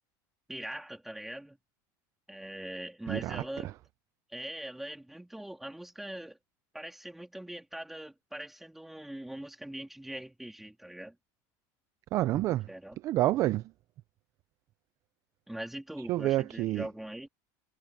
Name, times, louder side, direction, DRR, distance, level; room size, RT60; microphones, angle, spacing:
voice 1, 0.5-1.6 2.3-3.7 4.3-6.4 6.7-11.1 12.7-13.0 15.5-17.3, right 1 dB, ahead, 3.4 m, -42 dB
voice 2, 3.1-3.4 12.1-12.7 13.0-13.6 16.1-16.9, right 15 dB, 30° right, 0.4 m, -28 dB
cardioid pair, 175°, 10 cm